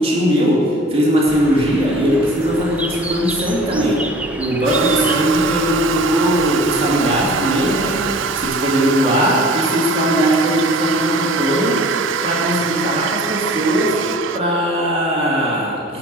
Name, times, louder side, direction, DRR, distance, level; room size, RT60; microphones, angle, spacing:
voice 1, 0.0-4.0 4.4-8.0 8.3-11.8 12.2-14.0 14.3-16.0, equal, 30° right, -5 dB, 2.7 m, -18 dB
Bird, 1.3-8.5, right 1 dB, 5° right, 0.5 m, -30 dB
Toilet flush, 4.6-14.4, right 8 dB, 90° right, 0.4 m, -24 dB
11.5 x 5.8 x 7.0 m, 2.8 s
head